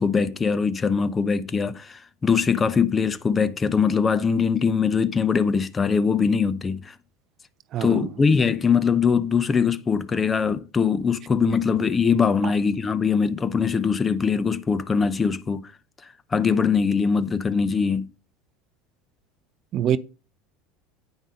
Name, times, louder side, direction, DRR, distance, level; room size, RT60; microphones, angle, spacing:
voice 1, 0.0-6.9 7.8-15.7 16.3-18.1, left 6 dB, 25° left, 0.7 m, -22 dB
voice 2, 7.7-8.1 12.4-12.5 19.7-20.0, right 10 dB, 45° right, 0.5 m, -24 dB
8.9 x 5.4 x 5.2 m
hypercardioid pair, 75°, 0 cm